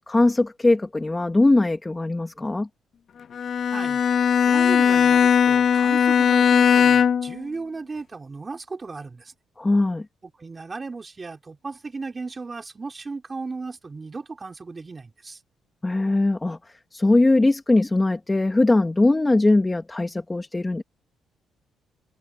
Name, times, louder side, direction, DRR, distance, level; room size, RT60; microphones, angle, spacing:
voice 1, 0.0-2.7 9.6-10.1 15.8-16.6 16.9-20.8, left 2 dB, 15° left, 2.7 m, -20 dB
Bowed string instrument, 3.3-7.4, left 7 dB, 55° left, 0.3 m, -18 dB
voice 2, 3.7-4.0 4.5-9.3 10.4-15.4, right 4 dB, 30° right, 3.8 m, -36 dB
cardioid pair, 90°, 0 cm